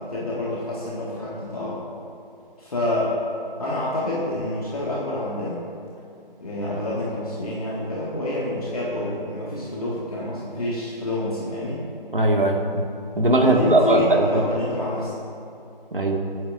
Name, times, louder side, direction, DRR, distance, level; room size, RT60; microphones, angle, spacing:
voice 1, 0.0-1.8 2.6-3.1 3.6-5.6 6.4-11.8 13.4-15.2, left 1 dB, 40° left, -7 dB, 1.9 m, -28 dB
voice 2, 12.1-12.8 13.2-14.4 15.9-16.2, right 1 dB, 65° right, 1 dB, 1.9 m, -19 dB
26.5 x 9.0 x 2.6 m, 2.6 s
figure-of-eight pair, 160°, 29 cm